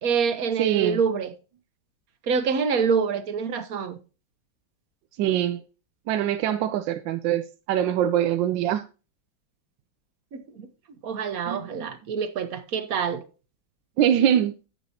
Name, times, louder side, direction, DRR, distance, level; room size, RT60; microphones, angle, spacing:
voice 1, 0.0-1.3 2.3-4.0 10.3-10.7 11.0-13.2, right 6 dB, 55° right, 1.2 m, -26 dB
voice 2, 0.6-1.0 5.2-5.6 6.1-7.4 7.7-8.8 11.5-11.9 14.0-14.5, right 10 dB, 75° right, 1.2 m, -23 dB
10.5 x 8.3 x 2.8 m
omnidirectional pair, 2.1 m